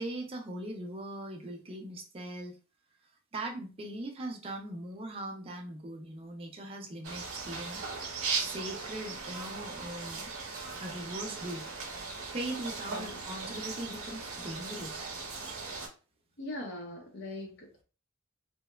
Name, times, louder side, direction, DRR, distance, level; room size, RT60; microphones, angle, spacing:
voice 1, 0.0-2.6 3.3-7.8 8.4-10.3 10.8-11.6 12.3-15.1, right 1 dB, 25° right, 2 dB, 0.4 m, -40 dB
sound 1, 7.0-15.9, right 4 dB, 80° right, 0.7 m, -38 dB
voice 2, 12.9-13.3 16.4-17.8, left 1 dB, 55° left, 0 dB, 0.6 m, -41 dB
2.9 x 2.1 x 2.2 m, 0.34 s
head